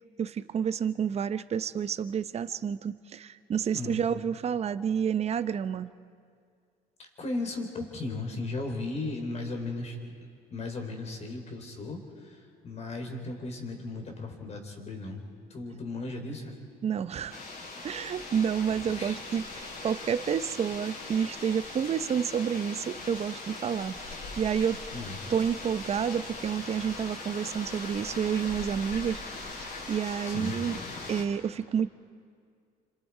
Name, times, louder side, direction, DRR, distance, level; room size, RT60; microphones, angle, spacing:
voice 1, 0.2-5.9 16.8-17.4 17.8-24.8 25.3-29.2 29.6-30.8 31.1-31.9, right 7 dB, 40° right, 13 dB, 0.7 m, -29 dB
voice 2, 7.2-10.0 10.5-15.2 15.5-16.6 18.3-18.4 18.9-19.2 24.9-25.2 30.3-30.5, left 2 dB, 40° left, 3 dB, 4.1 m, -36 dB
sound 1, 17.3-31.2, left 3 dB, 55° left, 6.3 m, -40 dB
28.5 x 26.0 x 4.8 m, 2.2 s
cardioid pair, 110°, 17 cm